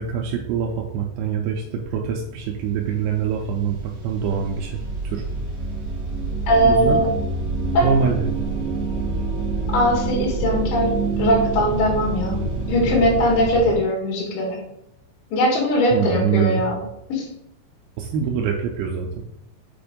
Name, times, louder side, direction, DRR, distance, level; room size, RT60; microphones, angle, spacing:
voice 1, 0.0-5.2 6.6-7.0 7.8-8.4 15.9-16.7 18.0-19.2, right 7 dB, 80° right, 0 dB, 2.3 m, -24 dB
sound 1, 2.7-2.8 3.1-13.8, right 3 dB, 50° right, 1.4 m, -27 dB
voice 2, 6.5-7.1 7.7-7.9 9.7-12.4 12.7-14.6 15.3-16.8 17.1-17.3, equal, 85° left, -2 dB, 4.0 m, -20 dB
7.6 x 2.6 x 5.1 m, 0.79 s
omnidirectional pair, 5.0 m